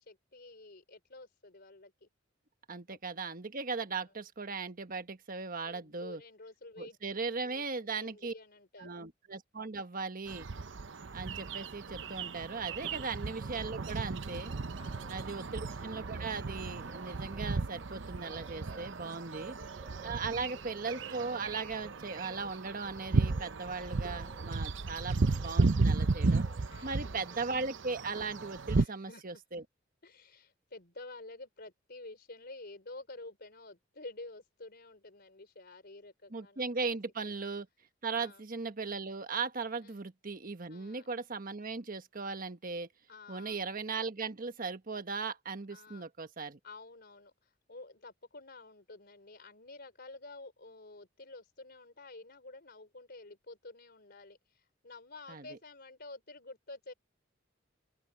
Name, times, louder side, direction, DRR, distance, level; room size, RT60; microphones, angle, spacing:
voice 1, 0.0-2.1 2.9-3.0 4.0-4.1 5.6-7.0 7.3-7.6 7.9-8.9 12.9-13.2 14.8-15.5 19.2-19.7 20.2-20.6 24.8-25.2 26.7-27.2 28.7-29.4 30.0-37.0 37.2-37.5 38.1-38.4 39.8-40.1 40.7-41.1 43.1-43.7 45.7-46.1 46.6-56.9, left 2 dB, 55° left, 3.9 m, -51 dB
voice 2, 2.7-6.2 6.8-8.3 8.8-10.5 11.1-14.5 15.1-19.6 20.0-26.4 26.8-29.6 36.3-37.6 38.0-42.9 43.3-46.6 55.3-55.4, right 4 dB, 45° right, 1.3 m, -38 dB
sound 1, 10.3-28.8, right 3 dB, 70° right, 0.7 m, -34 dB
Bird, 11.5-28.8, right 1 dB, 15° right, 3.3 m, -60 dB
open air
head